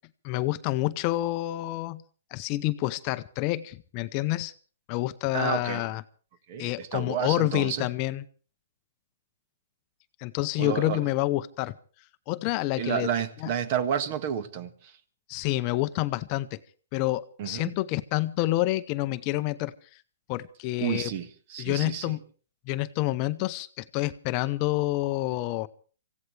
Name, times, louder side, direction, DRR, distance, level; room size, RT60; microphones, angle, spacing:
voice 1, 0.2-2.0 2.3-4.5 4.9-6.0 6.6-8.2 10.2-11.7 12.3-13.1 13.4-13.5 15.3-16.6 16.9-19.7 20.3-21.1 21.6-22.2 22.7-25.7, left 17 dB, 35° left, 0.7 m, -28 dB
voice 2, 5.3-5.9 6.5-7.9 10.6-11.0 12.8-14.9 17.4-17.7 20.8-22.1, right 9 dB, 45° right, 1.6 m, -30 dB
25.5 x 16.0 x 3.3 m
hypercardioid pair, 145°, 0 cm